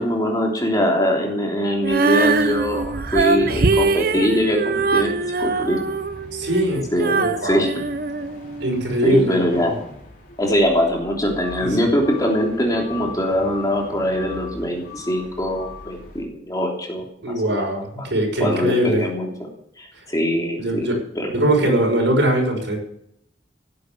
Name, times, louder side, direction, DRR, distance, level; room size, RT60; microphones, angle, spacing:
voice 1, 0.0-5.1 5.4-5.8 6.9-7.7 9.0-9.8 10.4-17.0 17.4-17.6 18.0-18.1 18.4-19.3 19.8-21.3, equal, 20° left, 0 dB, 3.3 m, -22 dB
Female singing, 1.8-8.9, right 3 dB, 55° right, 0.9 m, -22 dB
sound 1, 2.2-16.2, left 2 dB, 50° left, 3.5 m, -41 dB
voice 2, 6.3-6.8 7.2-7.6 8.6-9.7 11.6-11.9 17.2-19.0 20.6-21.0 21.3-22.8, right 1 dB, 80° right, 1 dB, 6.0 m, -21 dB
17.0 x 8.4 x 8.0 m, 0.74 s
head